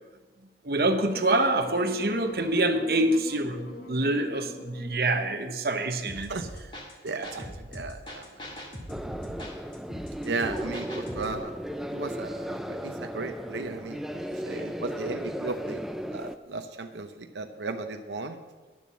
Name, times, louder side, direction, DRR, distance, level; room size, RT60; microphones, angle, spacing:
voice 1, 0.6-6.3 7.2-7.3, right 2 dB, 60° right, 6 dB, 0.9 m, -26 dB
Wind instrument woodwind instrument, 1.1-6.2, left 2 dB, 65° left, 1.6 m, -44 dB
sound 1, 6.1-11.4, equal, 30° left, 1.8 m, -41 dB
voice 2, 6.2-6.5 7.0-8.3 10.2-11.6 11.9-15.8 16.1-18.4, right 3 dB, 90° right, 6 dB, 0.7 m, -35 dB
sound 2, 8.9-16.4, equal, ahead, 0.3 m, -35 dB
10.5 x 7.0 x 7.5 m, 1.3 s
head